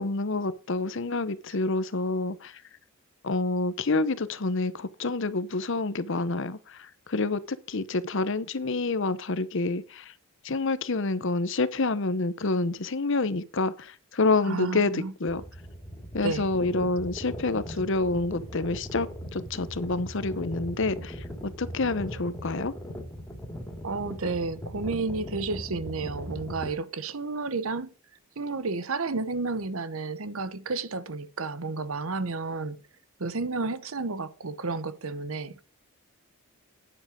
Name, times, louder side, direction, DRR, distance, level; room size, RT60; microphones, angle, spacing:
voice 1, 0.0-2.5 3.2-10.1 10.4-15.4 16.1-19.1 19.3-21.2 21.4-22.7, left 3 dB, 55° left, 0.8 m, -28 dB
voice 2, 14.4-15.1 16.2-16.5 23.8-27.9 28.4-32.8 33.2-35.6, right 3 dB, 70° right, 0.9 m, -31 dB
sound 1, 15.3-26.7, equal, 10° left, 2.2 m, -39 dB
9.8 x 7.6 x 5.0 m
head